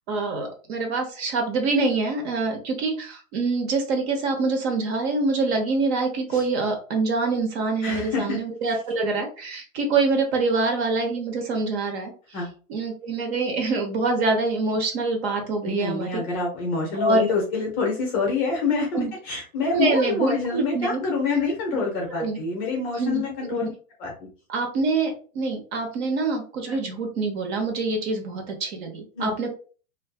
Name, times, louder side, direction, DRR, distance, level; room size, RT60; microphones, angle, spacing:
voice 1, 0.1-12.1 12.7-16.2 16.9-17.2 18.9-19.1 19.6-21.0 21.7-21.9 22.2-22.4 23.0-23.2 23.5-23.6 24.5-29.5, right 3 dB, 50° right, 3 dB, 0.9 m, -25 dB
voice 2, 7.8-8.4 12.3-12.5 15.6-23.7 24.0-24.1 26.7-26.8 29.1-29.3, left 4 dB, 20° left, -1 dB, 0.5 m, -26 dB
2.5 x 2.3 x 2.2 m, 0.38 s
hypercardioid pair, 135°, 42 cm